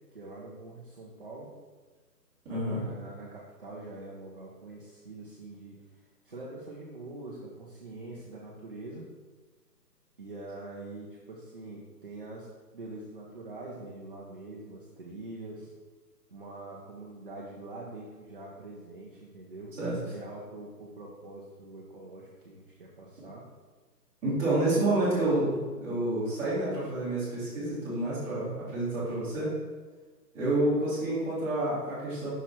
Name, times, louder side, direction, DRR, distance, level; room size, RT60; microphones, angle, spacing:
voice 1, 0.1-1.5 2.6-9.1 10.2-12.5 12.7-15.7 16.3-23.4, right 2 dB, 35° right, -4 dB, 0.7 m, -44 dB
voice 2, 2.4-2.8 19.8-19.9 24.2-29.5 30.3-32.3, right 1 dB, 5° right, -14 dB, 1.6 m, -29 dB
5.9 x 4.4 x 4.3 m, 1.4 s
hypercardioid pair, 170°, 50 cm